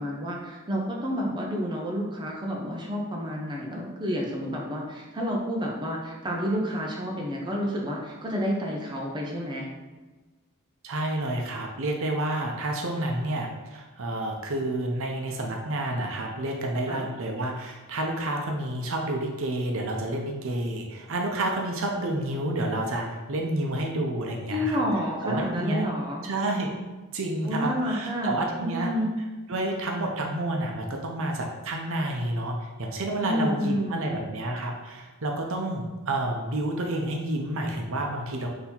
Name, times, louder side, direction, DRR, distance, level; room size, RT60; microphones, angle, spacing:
voice 1, 0.0-9.7 16.9-17.0 24.5-26.3 27.4-29.1 33.2-34.2, equal, 20° right, -2 dB, 0.7 m, -30 dB
voice 2, 10.8-24.8 25.2-25.9 26.2-26.7 27.1-29.0 29.5-38.5, right 1 dB, 65° right, 1 dB, 0.7 m, -29 dB
4.0 x 2.9 x 4.3 m, 1.2 s
head